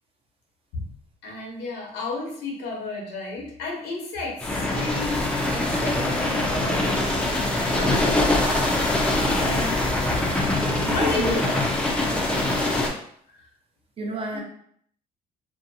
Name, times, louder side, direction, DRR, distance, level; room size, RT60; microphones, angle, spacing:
voice 1, 1.2-5.2 5.5-8.2 9.3-9.8 10.9-11.4, left 3 dB, 90° left, -1 dB, 0.9 m, -32 dB
sound 1, 4.4-12.9, left 2 dB, 5° left, 0.5 m, -23 dB
voice 2, 10.8-11.6 12.1-12.6 14.0-14.4, right 2 dB, 35° right, 0 dB, 0.7 m, -30 dB
2.7 x 2.2 x 2.6 m, 0.65 s
cardioid pair, 110°, 17 cm